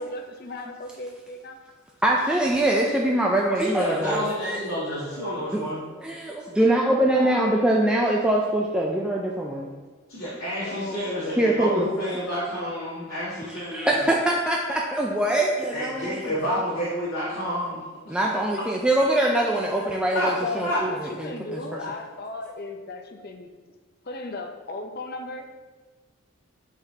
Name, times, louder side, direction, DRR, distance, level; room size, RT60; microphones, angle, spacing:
voice 1, 0.0-1.6 7.1-7.6 10.6-11.0 20.4-23.5 24.1-25.4, left 2 dB, 45° left, 4 dB, 0.6 m, -35 dB
voice 2, 2.0-4.6 6.0-9.7 10.6-10.7 11.4-11.9 13.7-16.1 18.1-21.1 21.5-21.8, right 1 dB, 5° right, -2 dB, 0.3 m, -23 dB
voice 3, 3.5-5.8 10.1-14.1 15.7-18.1 20.1-20.3 20.6-20.8, equal, 70° left, -9 dB, 1.6 m, -29 dB
9.7 x 4.1 x 2.7 m, 1.3 s
head